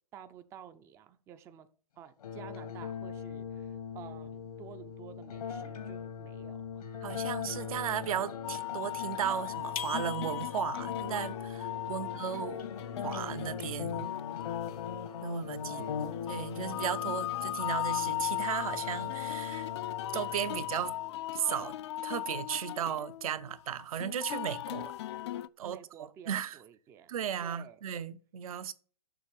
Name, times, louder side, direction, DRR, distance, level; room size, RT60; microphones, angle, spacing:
voice 1, 0.1-1.7 2.0-6.8 11.9-12.1 15.5-16.3 25.6-27.1 27.4-27.8, right 9 dB, 15° right, 0.4 m, -51 dB
sound 1, 2.2-21.2, left 7 dB, 85° left, 1.8 m, -40 dB
voice 2, 7.0-12.6 13.0-14.2 15.2-19.7 20.1-20.9 21.3-21.7 22.0-24.9 25.3-26.6 27.1-28.7, right 9 dB, 65° right, 0.8 m, -36 dB
sound 2, 8.4-25.5, left 15 dB, 45° left, 0.4 m, -38 dB
sound 3, 9.8-10.8, left 8 dB, 65° left, 0.9 m, -41 dB
7.0 x 6.0 x 7.3 m
hypercardioid pair, 150°, 19 cm